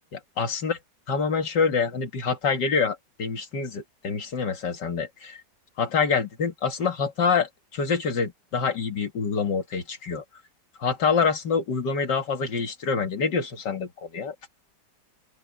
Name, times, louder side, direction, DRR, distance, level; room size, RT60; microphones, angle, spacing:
voice 1, 0.1-0.8 1.1-5.4 5.8-10.2 10.8-14.3, left 5 dB, 75° left, 2.5 m, -26 dB
open air
omnidirectional pair, 1.9 m